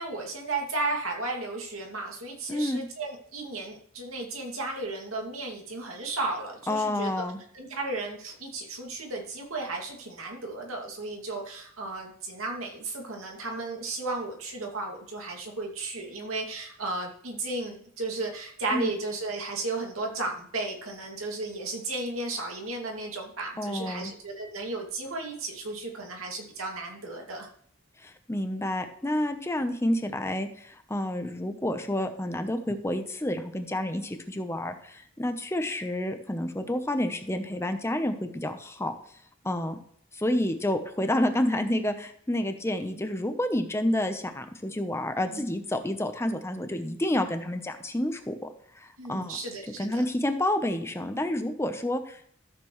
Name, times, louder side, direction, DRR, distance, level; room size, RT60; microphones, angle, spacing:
voice 1, 0.0-7.2 7.5-27.5 45.3-45.4 49.0-50.0, right 2 dB, 80° right, 1 dB, 2.3 m, -34 dB
voice 2, 2.5-2.8 6.7-7.4 18.7-18.9 23.6-24.1 28.0-38.9 39.4-39.8 40.1-48.3 48.7-49.4 49.8-52.3, left 1 dB, 15° left, 7 dB, 0.8 m, -29 dB
13.5 x 6.8 x 3.1 m, 0.63 s
head